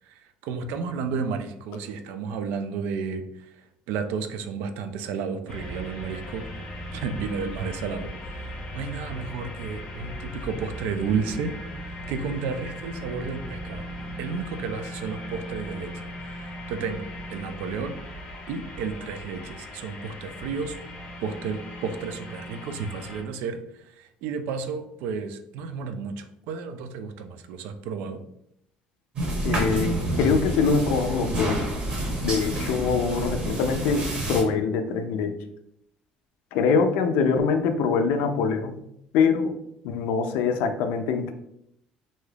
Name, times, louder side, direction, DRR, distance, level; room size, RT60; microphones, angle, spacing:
voice 1, 0.1-3.6 3.9-6.5 6.9-11.5 11.8-13.9 14.2-18.0 18.5-20.8 21.2-28.2, right 5 dB, 80° right, 9 dB, 0.3 m, -32 dB
sound 1, 5.5-23.2, equal, 30° left, 0.6 m, -38 dB
sound 2, 29.2-34.4, right 1 dB, 30° right, 0.7 m, -28 dB
voice 2, 29.4-31.6 32.2-35.3 36.5-38.8 39.1-39.5 39.8-41.3, left 5 dB, 80° left, 7 dB, 0.4 m, -24 dB
2.6 x 2.3 x 3.3 m, 0.76 s
cardioid pair, 160°, 3 cm